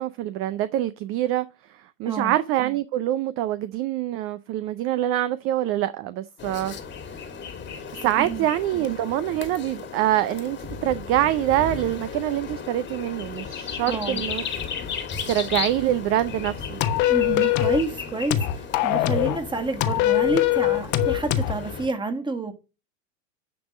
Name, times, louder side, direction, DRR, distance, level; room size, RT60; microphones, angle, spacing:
voice 1, 0.0-6.7 8.0-14.4 14.9-15.0 15.3-16.8, right 13 dB, 35° right, 0.4 m, -25 dB
sound 1, 6.4-21.9, left 6 dB, 30° left, 1.7 m, -35 dB
voice 2, 13.9-14.2 17.1-22.5, right 3 dB, 10° right, 1.5 m, -29 dB
sound 2, 16.8-17.8 18.3-19.4 19.8-21.6, left 13 dB, 45° left, 1.1 m, -22 dB
10.0 x 3.5 x 6.2 m
hypercardioid pair, 95°, 41 cm